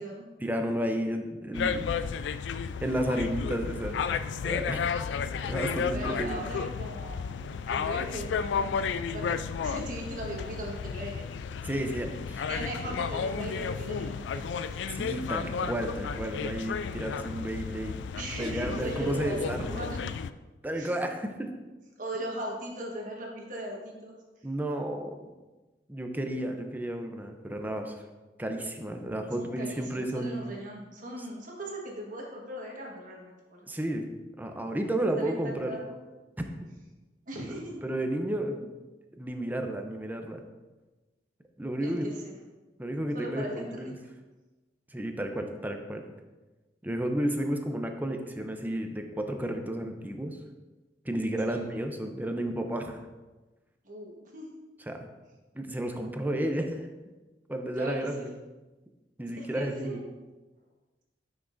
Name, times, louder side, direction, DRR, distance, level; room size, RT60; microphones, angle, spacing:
voice 1, 0.4-2.0 2.8-4.0 4.4-4.9 5.4-6.4 11.6-12.4 14.9-18.0 18.4-20.0 20.6-21.5 24.4-25.2 25.9-28.0 28.4-30.4 33.7-34.1 34.4-35.7 37.5-38.7 39.2-40.4 41.6-42.1 42.8-43.9 44.9-46.0 46.8-50.4 51.0-53.0 54.9-55.0 55.5-56.9 57.5-58.3 59.2-60.0, right 1 dB, 10° right, 4 dB, 0.6 m, -32 dB
sound 1, 1.5-20.3, left 6 dB, 80° left, 0.3 m, -33 dB
voice 2, 5.9-8.8 9.1-11.2 12.5-14.9 18.2-20.0 20.7-20.9 22.0-24.1 29.4-33.9 35.2-36.0 37.3-37.8 41.8-42.3 43.1-43.9 51.5-51.7 53.8-54.5 57.8-58.3 59.4-60.0, right 1 dB, 50° right, -1 dB, 1.4 m, -39 dB
9.5 x 6.0 x 2.6 m, 1.2 s
head